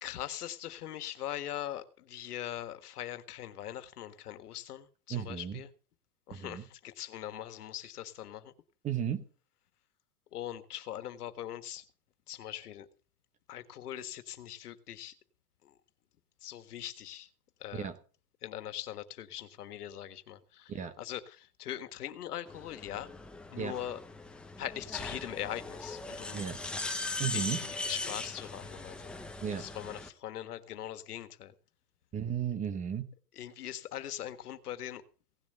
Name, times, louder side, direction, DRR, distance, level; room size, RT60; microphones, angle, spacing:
voice 1, 0.0-5.7 6.3-8.5 10.3-11.9 12.3-12.9 13.5-15.1 15.6-15.7 16.4-17.3 17.6-17.9 18.4-20.7 21.0-23.1 23.5-24.0 24.6-26.4 27.3-29.1 29.5-31.5 33.4-35.0, left 11 dB, 85° left, 1.7 m, -41 dB
voice 2, 5.1-5.6 6.3-6.6 8.8-9.2 17.7-18.0 20.7-21.0 23.6-23.8 26.3-26.6 27.2-27.7 29.4-29.7 32.1-33.1, right 8 dB, 15° right, 1.0 m, -34 dB
sound 1, 22.5-30.1, left 3 dB, ahead, 0.6 m, -40 dB
17.5 x 7.4 x 6.8 m
supercardioid pair, 155°, 44 cm